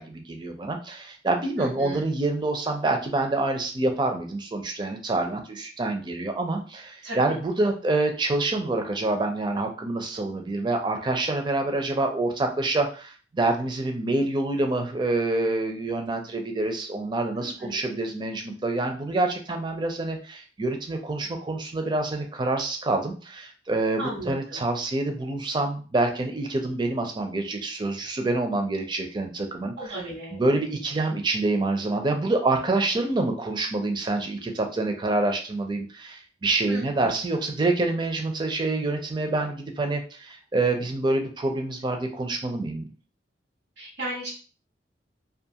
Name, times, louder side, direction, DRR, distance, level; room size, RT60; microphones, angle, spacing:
voice 1, 0.0-29.7 30.3-42.9, right 2 dB, 25° right, 4 dB, 0.4 m, -27 dB
voice 2, 1.6-2.0 7.0-7.3 17.4-17.8 24.0-24.6 29.8-30.4 36.7-37.1 43.8-44.3, right 1 dB, 85° right, -7 dB, 1.0 m, -35 dB
2.5 x 2.3 x 2.7 m, 0.37 s
head